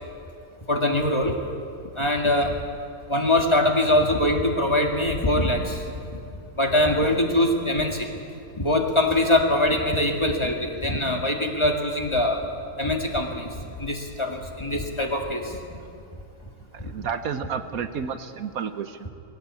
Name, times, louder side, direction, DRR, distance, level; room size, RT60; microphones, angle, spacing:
voice 1, 0.7-1.4 2.0-2.6 3.1-5.8 6.6-8.1 8.6-12.5 12.8-13.5 13.8-15.6 16.8-16.9, left 1 dB, 20° left, 1 dB, 2.0 m, -23 dB
voice 2, 16.7-19.1, right 7 dB, 70° right, 9 dB, 1.3 m, -31 dB
21.0 x 16.5 x 8.4 m, 2.4 s
omnidirectional pair, 1.6 m